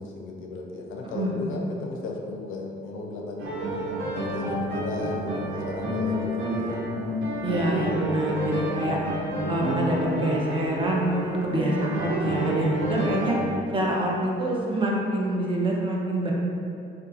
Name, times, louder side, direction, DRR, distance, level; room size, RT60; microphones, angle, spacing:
voice 1, 0.0-3.5 4.1-6.8 12.7-13.4, left 2 dB, 80° left, 0 dB, 0.4 m, -35 dB
voice 2, 1.0-1.6 7.4-9.0 9.5-13.4 13.7-16.3, right 1 dB, 25° right, -2 dB, 0.4 m, -26 dB
sound 1, 3.4-13.4, equal, 80° right, 0.6 m, -29 dB
2.7 x 2.3 x 2.4 m, 2.6 s
cardioid pair, 90°, 20 cm